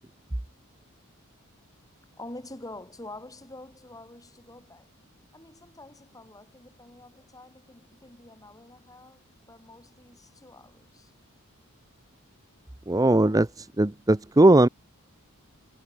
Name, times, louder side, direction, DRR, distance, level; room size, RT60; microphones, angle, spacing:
voice 1, 2.2-4.9 5.3-11.1, left 2 dB, 15° left, 7.5 m, -46 dB
voice 2, 12.9-14.7, right 1 dB, 15° right, 0.7 m, -19 dB
head